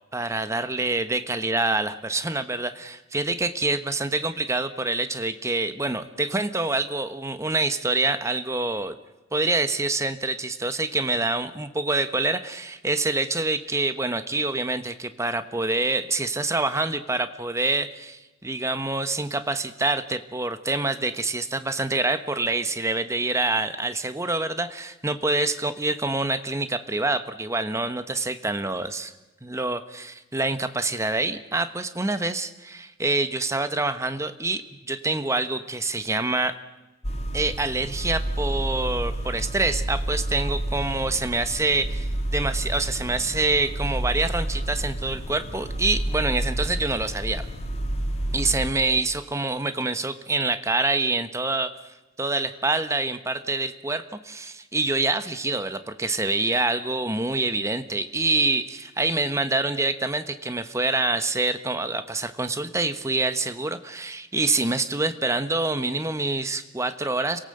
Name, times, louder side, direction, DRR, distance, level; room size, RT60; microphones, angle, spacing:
voice 1, 0.1-8.9 9.3-29.1 29.4-36.6 37.3-47.4 48.3-51.7 52.2-67.4, right 2 dB, 15° right, 11 dB, 1.1 m, -26 dB
sound 1, 37.0-48.7, right 1 dB, 35° left, 2.1 m, -29 dB
29.5 x 17.5 x 7.9 m, 1.0 s
head